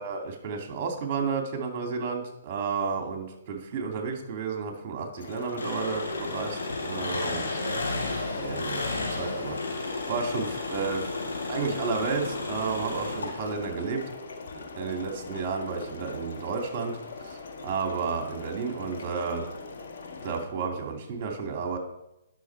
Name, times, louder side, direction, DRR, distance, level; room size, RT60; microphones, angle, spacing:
voice 1, 0.0-7.8 8.4-14.0 14.8-19.5 20.2-21.8, right 5 dB, 35° right, 3 dB, 2.4 m, -32 dB
sound 1, 5.2-20.4, left 3 dB, 65° left, 1.8 m, -41 dB
Engine, 5.6-13.7, left 3 dB, 85° left, 3.5 m, -33 dB
10.5 x 6.5 x 4.6 m, 0.91 s
hypercardioid pair, 140°, 0 cm